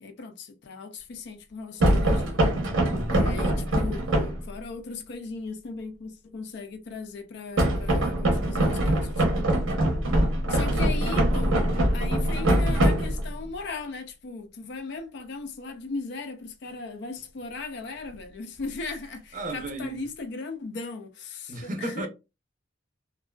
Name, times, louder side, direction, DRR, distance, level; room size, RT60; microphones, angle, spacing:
voice 1, 0.0-2.4 3.1-4.1 4.4-9.3 10.5-11.6 11.9-22.1, left 4 dB, 60° left, 0.4 m, -37 dB
sound 1, 1.8-4.5 7.6-13.5, right 1 dB, 85° right, 0.7 m, -23 dB
voice 2, 2.9-3.2 19.3-20.1 21.5-22.1, right 1 dB, 40° right, 0.5 m, -34 dB
2.4 x 2.3 x 2.2 m
head